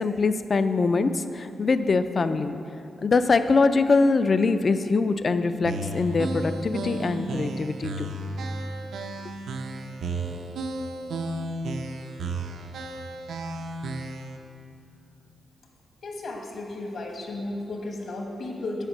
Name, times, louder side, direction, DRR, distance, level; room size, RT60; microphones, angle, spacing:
voice 1, 0.0-2.6 3.0-8.1, left 4 dB, 35° left, 11 dB, 0.3 m, -23 dB
sound 1, 5.6-14.4, right 2 dB, 85° right, 0.6 m, -33 dB
voice 2, 16.0-18.9, left 2 dB, 60° left, 1 dB, 1.2 m, -34 dB
8.9 x 5.2 x 6.1 m, 2.9 s
wide cardioid pair, 170°, 0 cm